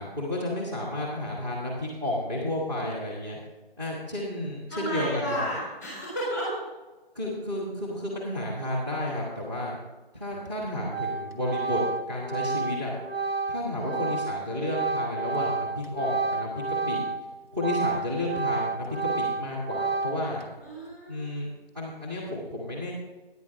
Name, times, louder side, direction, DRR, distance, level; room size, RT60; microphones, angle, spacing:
voice 1, 0.0-3.4 3.8-5.4 7.1-9.8 10.1-11.8 12.1-12.9 13.5-17.0 17.5-20.4 21.1-22.9, left 1 dB, 25° right, -3 dB, 1.8 m, -32 dB
voice 2, 4.7-6.5 13.8-14.0 20.6-21.2, equal, 5° right, -7 dB, 3.2 m, -32 dB
Organ, 10.3-10.6 10.9-17.2 17.5-20.4, right 4 dB, 80° right, 1.5 m, -30 dB
14.0 x 10.0 x 3.5 m, 1.2 s
figure-of-eight pair, 175°, 30 cm